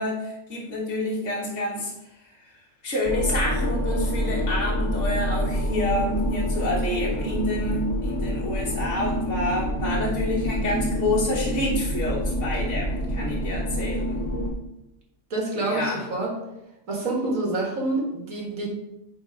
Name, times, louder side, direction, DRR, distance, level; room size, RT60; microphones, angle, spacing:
voice 1, 0.0-1.9 2.2-2.5 2.8-14.2 15.6-16.0, left 1 dB, 65° left, -6 dB, 1.5 m, -28 dB
sound 1, 3.0-14.5, equal, 20° left, 2.4 m, -27 dB
voice 2, 15.3-16.3 16.9-18.7, right 2 dB, 75° right, -1 dB, 2.1 m, -27 dB
9.3 x 4.0 x 3.6 m, 0.90 s
omnidirectional pair, 1.4 m